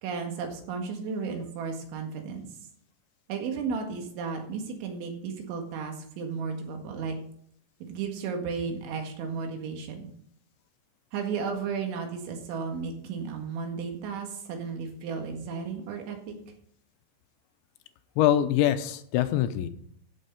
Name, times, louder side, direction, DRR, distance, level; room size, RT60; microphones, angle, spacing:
voice 1, 0.0-2.5 3.3-7.2 7.8-10.1 11.1-16.2, right 5 dB, 90° right, 3 dB, 4.2 m, -34 dB
voice 2, 18.2-19.7, left 12 dB, 85° left, 10 dB, 3.0 m, -24 dB
14.0 x 6.5 x 5.3 m, 0.65 s
omnidirectional pair, 5.2 m